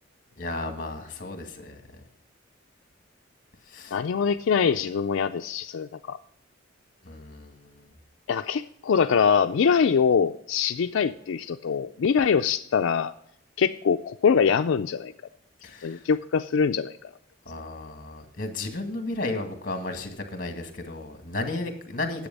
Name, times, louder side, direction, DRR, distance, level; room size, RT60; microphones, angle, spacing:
voice 1, 0.4-1.8 3.7-4.0 7.0-7.8 15.6-16.0 17.5-22.3, left 2 dB, 45° left, 5 dB, 1.9 m, -34 dB
voice 2, 3.9-6.2 8.3-13.1 13.6-15.1 15.8-17.1, left 6 dB, 80° left, 8 dB, 0.4 m, -23 dB
10.0 x 7.8 x 5.3 m, 0.71 s
head